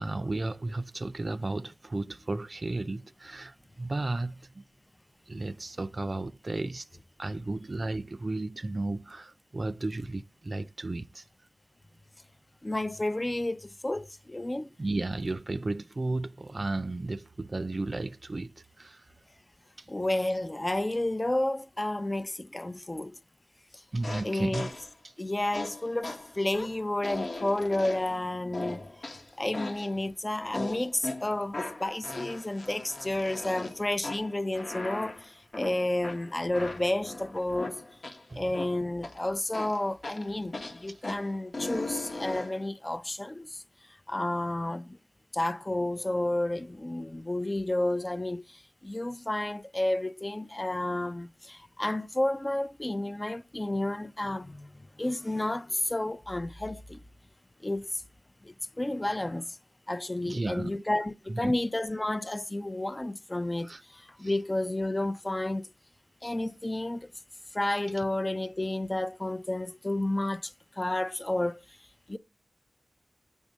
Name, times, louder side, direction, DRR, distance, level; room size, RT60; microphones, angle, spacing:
voice 1, 0.0-4.6 5.3-6.9 7.2-11.2 14.8-19.1 19.8-19.9 23.9-24.7 25.0-25.1 38.3-38.5 60.2-60.7 61.3-61.6 63.6-63.8 64.2-64.3, right 2 dB, 50° right, 0.4 m, -34 dB
voice 2, 12.6-14.7 19.9-23.2 23.7-23.8 24.2-24.7 25.2-37.8 38.3-43.6 44.1-45.0 45.3-57.0 57.6-58.0 58.4-59.6 59.9-65.7 66.2-67.1 67.5-71.6 72.1-72.2, left 1 dB, 30° left, 0.5 m, -31 dB
sound 1, 24.0-24.9 25.5-28.2 28.5-30.0 30.5-38.2 38.5-39.2 39.5-42.7, left 2 dB, 70° left, 1.2 m, -39 dB
7.2 x 3.6 x 5.1 m
cardioid pair, 45°, 0 cm